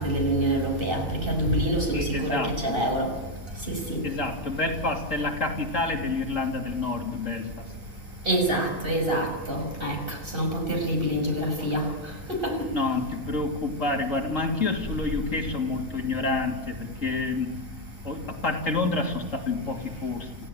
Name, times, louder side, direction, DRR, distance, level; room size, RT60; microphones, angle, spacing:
voice 1, 0.0-3.1 3.7-4.0 8.3-11.9 12.3-12.6, right 1 dB, 35° right, 6.5 m, -26 dB
voice 2, 1.9-2.8 4.0-7.7 12.7-17.5 18.0-20.3, left 3 dB, 60° left, 3.5 m, -28 dB
28.5 x 15.5 x 9.2 m
omnidirectional pair, 1.5 m